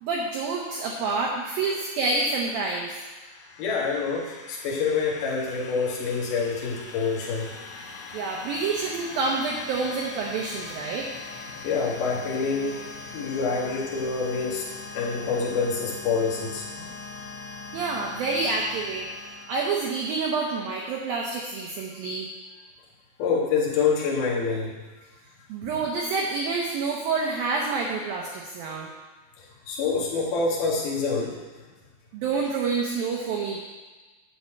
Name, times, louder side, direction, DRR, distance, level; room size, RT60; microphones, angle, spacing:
voice 1, 0.0-3.0 8.1-11.1 17.7-19.1 19.5-22.3 25.5-28.9 32.1-33.6, right 4 dB, 75° right, -2 dB, 2.2 m, -28 dB
sound 1, 2.8-20.4, left 4 dB, 80° left, 3.0 m, -41 dB
voice 2, 3.6-7.5 11.6-16.9 23.2-24.8 29.4-31.3, left 4 dB, 60° left, -3 dB, 2.7 m, -27 dB
9.7 x 4.1 x 7.5 m, 1.3 s
omnidirectional pair, 5.1 m